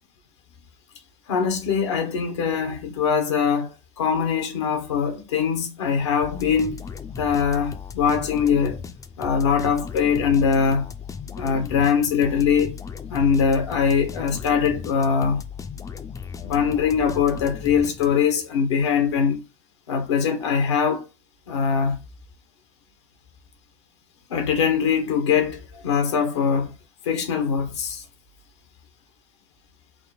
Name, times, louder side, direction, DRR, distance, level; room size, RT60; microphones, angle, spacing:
voice 1, 1.3-3.7 4.0-6.8 7.2-8.8 9.2-10.9 11.4-12.8 13.1-15.4 16.4-19.4 19.9-21.1 21.5-22.0 24.3-26.7 27.0-28.0, left 6 dB, 90° left, 0.9 m, -22 dB
sound 1, 6.2-18.4, left 6 dB, 25° left, 0.5 m, -37 dB
3.6 x 2.1 x 4.0 m
hypercardioid pair, 85°, 14 cm